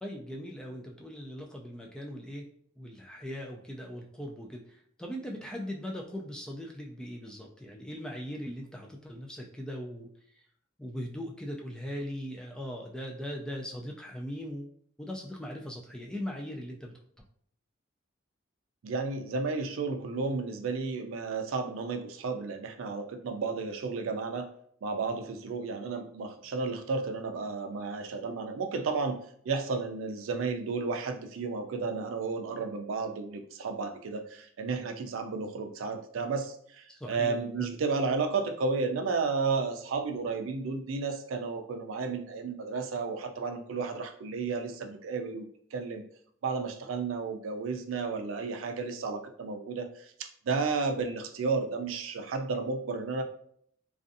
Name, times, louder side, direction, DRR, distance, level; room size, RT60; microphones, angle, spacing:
voice 1, 0.0-2.5 2.8-10.1 10.8-16.9 37.0-37.7, equal, 5° left, 0 dB, 0.3 m, -40 dB
voice 2, 18.8-24.5 24.8-29.2 29.4-45.5 45.7-46.0 46.4-50.1 50.5-53.2, right 4 dB, 90° right, 6 dB, 0.4 m, -32 dB
2.5 x 2.3 x 2.5 m, 0.64 s
head